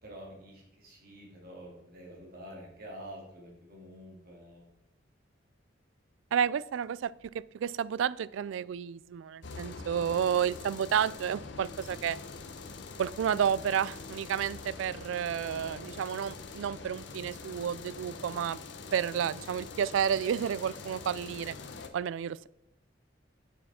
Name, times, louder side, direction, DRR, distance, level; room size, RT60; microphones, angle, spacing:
voice 1, 0.0-4.7, equal, 50° right, -2 dB, 2.6 m, -48 dB
voice 2, 6.3-12.2 13.0-18.6 18.9-21.5 21.9-22.5, right 8 dB, 80° right, 19 dB, 0.3 m, -31 dB
sound 1, 9.4-21.9, left 4 dB, 65° left, 0.8 m, -44 dB
8.7 x 6.6 x 4.2 m, 0.83 s
head